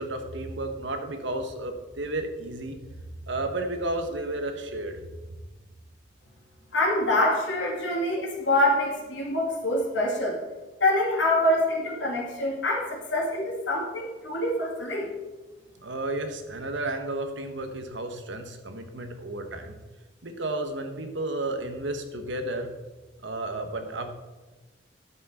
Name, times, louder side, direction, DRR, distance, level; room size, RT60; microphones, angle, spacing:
voice 1, 0.0-2.8 3.3-5.0 15.8-19.8 20.2-22.7 23.2-24.1, right 2 dB, 70° right, 6 dB, 1.3 m, -32 dB
voice 2, 6.7-10.4 10.8-15.1, left 1 dB, 70° left, -3 dB, 2.3 m, -25 dB
11.0 x 7.6 x 4.3 m, 1.2 s
head